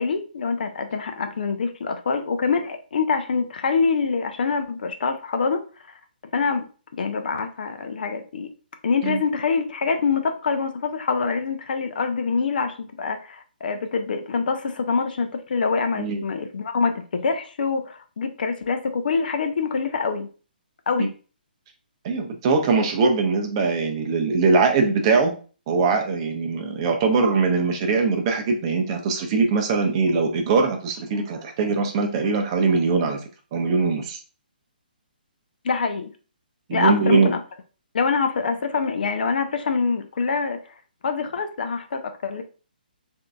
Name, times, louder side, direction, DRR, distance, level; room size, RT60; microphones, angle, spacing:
voice 1, 0.0-5.6 6.3-6.7 7.0-8.5 8.8-20.3 20.9-21.1 35.6-36.1 36.7-37.4 37.9-40.6 41.0-42.4, left 5 dB, 65° left, 0.5 m, -25 dB
voice 2, 22.0-25.3 25.7-33.2 33.5-34.2 36.7-37.3, right 4 dB, 35° right, 0.6 m, -21 dB
3.7 x 2.6 x 2.2 m
hypercardioid pair, 150°, 5 cm